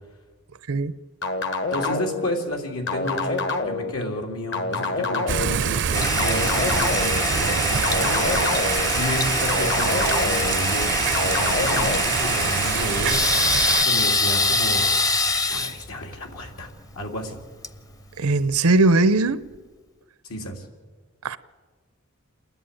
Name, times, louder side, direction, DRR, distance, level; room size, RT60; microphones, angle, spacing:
sound 1, 1.2-2.3 2.9-3.9 4.5-5.6 6.2-7.2 7.8-8.9 9.5-10.5 11.1-12.0, left 3 dB, 60° left, 1.5 m, -26 dB
voice 1, 1.7-13.4 13.8-14.8 15.5-16.7 16.9-17.4 20.3-20.6, left 1 dB, 85° left, 3.3 m, -31 dB
Thunder / Rain, 5.3-13.8, right 8 dB, 55° right, 0.5 m, -25 dB
Toilet flush, 5.9-18.6, left 3 dB, 15° left, 0.7 m, -25 dB
voice 2, 18.2-19.5 21.2-21.4, right 2 dB, 90° right, 0.8 m, -19 dB
28.0 x 11.0 x 9.1 m
head